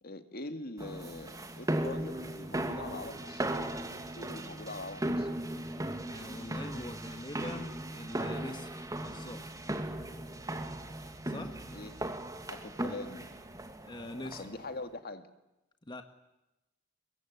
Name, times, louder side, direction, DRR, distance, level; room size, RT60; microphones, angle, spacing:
voice 1, 0.0-3.4 3.9-5.3 11.7-12.0 12.5-13.4 14.2-15.3, left 2 dB, 50° left, 8 dB, 2.3 m, -43 dB
sound 1, 0.8-14.7, right 1 dB, 15° right, 2.4 m, -37 dB
voice 2, 6.0-9.6 11.2-11.6 13.8-14.5 15.8-16.0, left 1 dB, 25° left, 6 dB, 1.7 m, -43 dB
25.0 x 22.0 x 9.7 m, 0.93 s
head